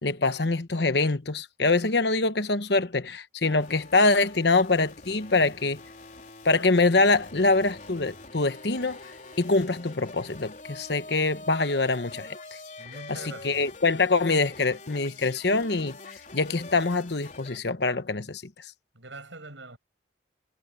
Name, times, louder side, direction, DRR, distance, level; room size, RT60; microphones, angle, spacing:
voice 1, 0.0-5.8 6.4-12.4 13.1-18.7, left 3 dB, 60° left, 1.1 m, -24 dB
sound 1, 3.4-17.6, left 3 dB, 40° left, 4.5 m, -45 dB
voice 2, 12.8-13.6 18.9-19.8, right 2 dB, 80° right, 6.7 m, -43 dB
head